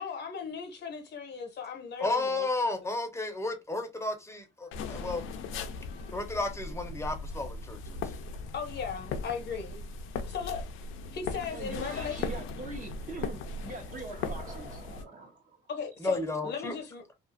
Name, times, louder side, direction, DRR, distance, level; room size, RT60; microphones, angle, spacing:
voice 1, 0.0-2.5 5.9-6.1 8.5-9.8 10.3-10.7 11.1-12.2 15.7-17.0, left 6 dB, 60° left, 0.9 m, -37 dB
voice 2, 2.0-5.2 6.1-8.2 16.0-16.7, left 2 dB, 15° left, 0.7 m, -32 dB
sound 1, 4.7-15.1, left 4 dB, 85° left, 0.4 m, -38 dB
voice 3, 11.5-15.7, right 3 dB, 40° right, 0.9 m, -43 dB
2.4 x 2.4 x 2.6 m
cardioid pair, 90°, 20 cm